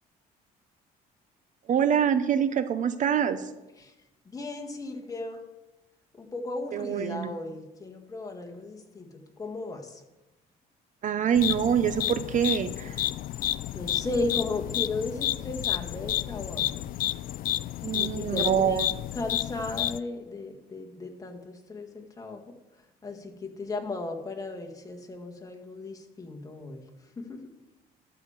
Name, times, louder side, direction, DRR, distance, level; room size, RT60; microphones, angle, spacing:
voice 1, 1.7-3.5 6.7-7.3 11.0-13.0 17.8-18.9, right 8 dB, 50° right, 12 dB, 0.7 m, -25 dB
voice 2, 4.3-5.4 6.2-10.0 13.7-16.8 17.9-18.8 19.1-22.4 23.0-26.8 27.2-27.4, left 2 dB, 20° left, 2 dB, 1.7 m, -35 dB
sound 1, 11.3-20.0, left 14 dB, 55° left, 0.4 m, -31 dB
12.5 x 5.0 x 7.3 m, 1.0 s
cardioid pair, 110°, 17 cm